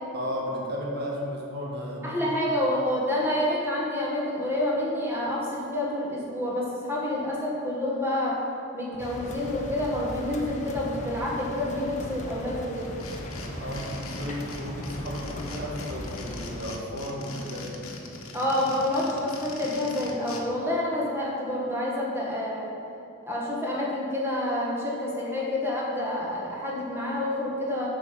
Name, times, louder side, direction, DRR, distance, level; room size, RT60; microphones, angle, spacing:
voice 1, 0.1-2.2 13.6-17.9, equal, 50° right, -2 dB, 1.7 m, -34 dB
voice 2, 2.0-8.4 8.7-12.9 18.3-22.7 23.3-27.9, left 1 dB, 10° right, -4 dB, 1.6 m, -28 dB
sound 1, 9.0-16.6, equal, 35° left, 0.9 m, -37 dB
sound 2, 12.7-20.4, left 3 dB, 80° left, 1.2 m, -41 dB
8.2 x 5.5 x 7.3 m, 2.6 s
head